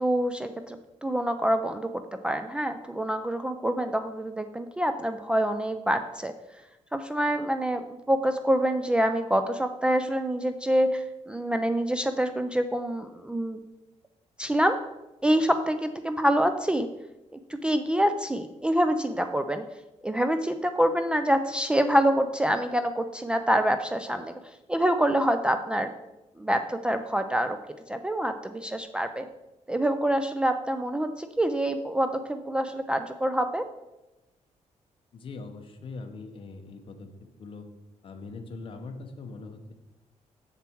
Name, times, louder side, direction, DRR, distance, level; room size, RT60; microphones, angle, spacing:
voice 1, 0.0-1.9 2.2-6.3 6.9-13.6 14.4-14.8 15.2-16.9 17.5-19.6 20.0-24.3 24.7-25.9 26.4-27.6 27.9-29.3 29.7-33.6, right 1 dB, 10° right, 8 dB, 0.3 m, -26 dB
voice 2, 35.1-37.1 37.4-37.7 38.0-39.7, left 3 dB, 45° left, 6 dB, 0.9 m, -41 dB
7.3 x 6.9 x 4.5 m, 0.98 s
wide cardioid pair, 165°, 12 cm